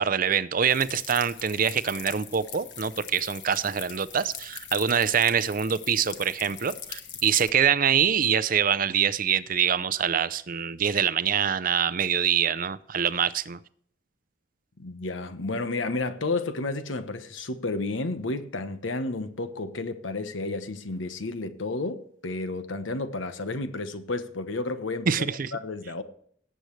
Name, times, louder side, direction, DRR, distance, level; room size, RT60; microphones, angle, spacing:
voice 1, 0.0-13.6 25.1-25.5, right 7 dB, 45° right, 0.5 m, -25 dB
sound 1, 0.7-7.5, left 9 dB, 65° left, 1.4 m, -42 dB
voice 2, 14.8-26.0, left 2 dB, 85° left, 1.1 m, -31 dB
18.5 x 7.9 x 3.2 m
head